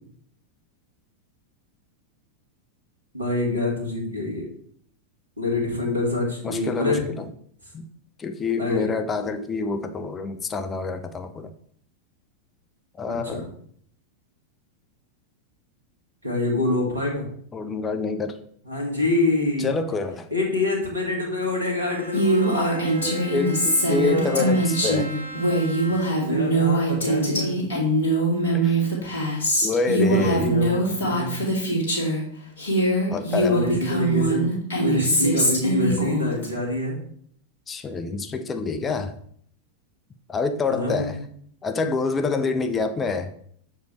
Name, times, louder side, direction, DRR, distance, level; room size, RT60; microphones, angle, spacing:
voice 1, 3.1-4.5 5.4-7.0 8.6-8.9 13.1-13.5 16.2-17.3 18.6-19.7 20.3-23.3 23.8-24.5 26.2-27.5 30.0-31.4 33.5-37.0 40.7-41.3, left 2 dB, 80° right, 0 dB, 1.6 m, -26 dB
voice 2, 6.4-7.3 7.7-7.9 8.2-11.5 13.0-13.4 17.5-18.4 19.6-20.3 23.3-25.2 28.5-28.8 29.6-30.5 33.1-33.6 37.7-39.2 40.3-41.2 41.6-43.5, left 4 dB, 20° left, 8 dB, 0.5 m, -27 dB
Bowed string instrument, 21.4-26.4, right 1 dB, 85° left, 1.3 m, -40 dB
Female speech woman speaking, 22.1-32.2 32.6-36.5, right 1 dB, 65° left, 1.8 m, -23 dB
6.6 x 4.5 x 3.2 m, 0.63 s
figure-of-eight pair, 90°, 0 cm